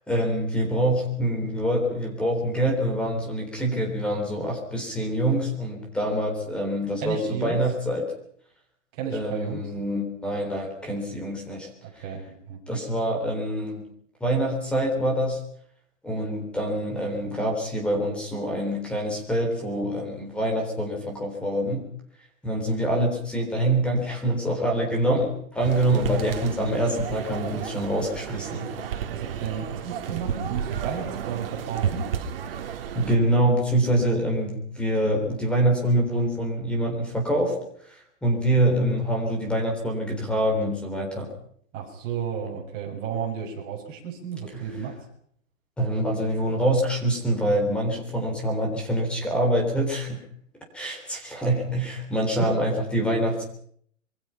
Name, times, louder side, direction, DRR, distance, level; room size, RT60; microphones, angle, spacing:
voice 1, 0.1-8.0 9.1-11.7 12.7-13.8 14.2-15.4 16.0-21.8 22.4-29.0 32.6-37.6 37.8-41.3 44.5-44.6 45.8-50.2 50.7-53.5, right 1 dB, 5° left, 1 dB, 3.8 m, -25 dB
voice 2, 7.0-7.6 8.9-9.6 11.8-12.6 29.1-32.1 41.7-45.0 52.4-52.5, right 7 dB, 20° right, 0 dB, 6.8 m, -33 dB
sound 1, 25.6-33.2, right 8 dB, 45° right, 2.9 m, -32 dB
26.5 x 24.0 x 5.8 m, 0.64 s
hypercardioid pair, 175°, 39 cm